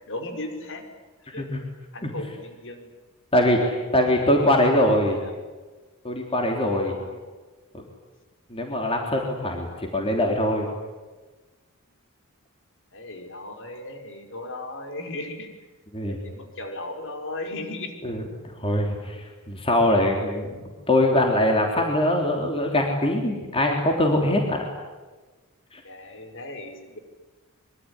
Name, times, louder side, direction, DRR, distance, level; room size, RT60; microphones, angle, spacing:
voice 1, 0.1-0.8 1.2-1.5 1.9-2.9 3.7-4.4 5.1-5.6 6.8-7.2 12.9-15.5 16.1-18.0 19.1-19.2 25.8-27.0, left 2 dB, 60° left, 5 dB, 5.1 m, -37 dB
voice 2, 3.3-5.2 6.0-7.0 7.7-7.8 8.5-10.7 15.9-16.2 18.0-18.2 18.6-24.7 25.7-25.8, left 1 dB, 25° left, 1 dB, 3.6 m, -22 dB
25.5 x 24.0 x 9.8 m, 1.3 s
head